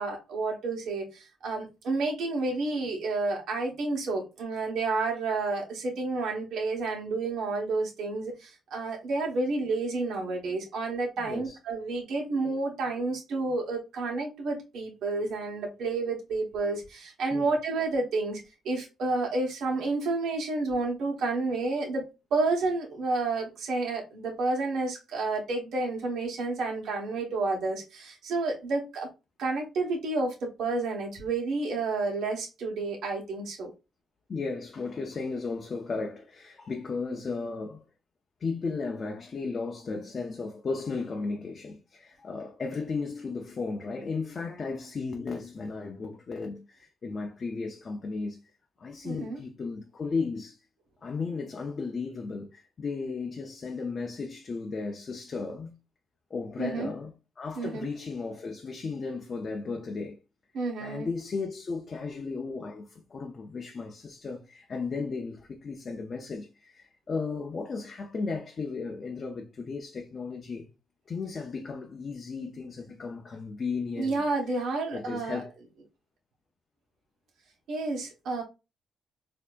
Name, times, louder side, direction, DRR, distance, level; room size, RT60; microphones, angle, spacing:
voice 1, 0.0-29.1 29.4-33.7 49.0-49.4 56.6-56.9 57.6-57.9 60.5-61.1 74.0-75.4 77.7-78.4, right 3 dB, 80° right, 1.3 m, -30 dB
voice 2, 11.2-11.6 17.3-17.5 34.3-37.8 38.4-48.4 48.8-50.6 51.0-55.7 56.3-60.2 60.8-70.7 71.1-74.2 74.9-75.5, left 4 dB, 40° left, 0.5 m, -35 dB
4.3 x 2.8 x 2.4 m
cardioid pair, 125°, 0 cm